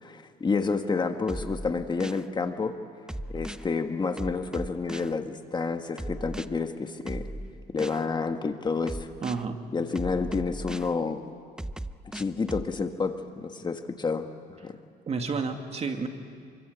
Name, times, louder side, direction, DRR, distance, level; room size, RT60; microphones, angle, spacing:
voice 1, 0.0-2.7 3.3-7.3 7.7-9.1 9.7-11.2 12.1-14.3 14.6-14.8, left 4 dB, 25° left, 6 dB, 1.5 m, -29 dB
sound 1, 1.3-2.2 3.1-3.6 4.2-5.1 6.0-6.5 7.1-8.0 8.9-9.4 9.9-10.9 11.6-12.7, right 1 dB, 5° right, 0.6 m, -37 dB
voice 2, 9.2-9.6 15.1-16.1, right 4 dB, 40° right, 5 dB, 2.3 m, -30 dB
27.5 x 23.5 x 8.2 m, 2.2 s
cardioid pair, 110°, 17 cm